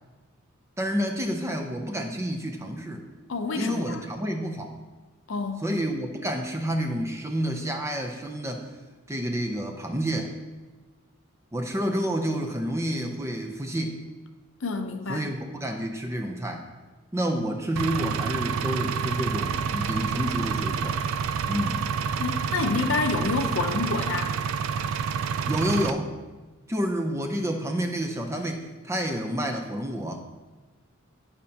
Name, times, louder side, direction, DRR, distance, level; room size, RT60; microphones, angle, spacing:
voice 1, 0.8-3.1 3.6-4.8 5.6-8.7 9.1-10.3 11.5-14.0 15.1-16.7 17.1-21.0 21.5-21.8 25.5-26.1 26.7-30.2, equal, 15° right, 3 dB, 0.6 m, -29 dB
voice 2, 3.3-4.0 5.3-5.6 14.6-15.3 22.2-24.3, left 4 dB, 65° left, 6 dB, 0.7 m, -28 dB
Engine, 17.8-25.9, right 6 dB, 85° right, 0.4 m, -28 dB
11.5 x 5.2 x 2.8 m, 1.2 s
head